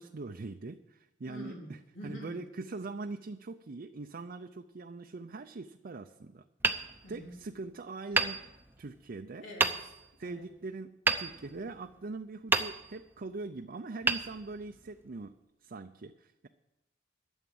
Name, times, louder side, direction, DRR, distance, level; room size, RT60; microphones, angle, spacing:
voice 1, 0.0-6.4 7.1-8.4 8.8-9.5 10.2-15.3 15.6-16.5, right 3 dB, 50° right, 6 dB, 0.5 m, -42 dB
voice 2, 1.3-2.4 7.0-7.4 9.4-9.9 10.2-10.5, equal, 90° left, -1 dB, 3.6 m, -46 dB
Hammer, 6.6-7.6 8.1-9.0 9.6-10.2 11.1-12.0 12.5-13.2 14.0-15.0, right 3 dB, 10° right, 0.7 m, -32 dB
13.0 x 7.2 x 8.6 m, 0.98 s
head